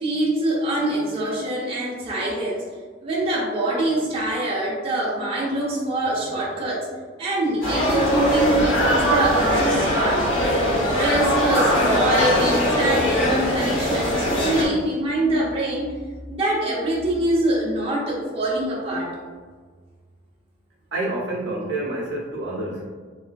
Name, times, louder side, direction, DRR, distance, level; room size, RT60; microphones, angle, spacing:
voice 1, 0.0-2.7 3.0-6.9 7.2-10.3 10.9-15.9 16.3-19.2, right 1 dB, 30° right, -5 dB, 0.5 m, -24 dB
sound 1, 7.6-14.6, equal, 85° left, 0.8 m, -20 dB
voice 2, 20.9-22.9, right 2 dB, 70° right, -3 dB, 0.5 m, -28 dB
3.2 x 2.4 x 2.2 m, 1.5 s
head